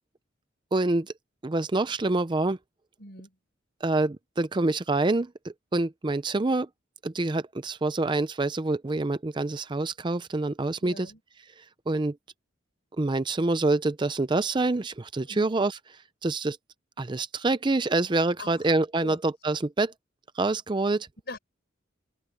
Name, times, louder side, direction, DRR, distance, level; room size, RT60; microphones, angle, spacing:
voice 1, 0.7-1.1 1.4-2.6 3.8-6.7 7.0-11.1 11.9-12.2 13.0-15.8 16.2-16.6 17.0-19.9 20.4-21.1, right 2 dB, 25° right, 0.5 m, -26 dB
voice 2, 3.0-3.4 10.8-11.2 15.3-15.5 18.4-18.7 19.0-19.2 21.3-21.4, left 2 dB, 55° left, 6.2 m, -42 dB
head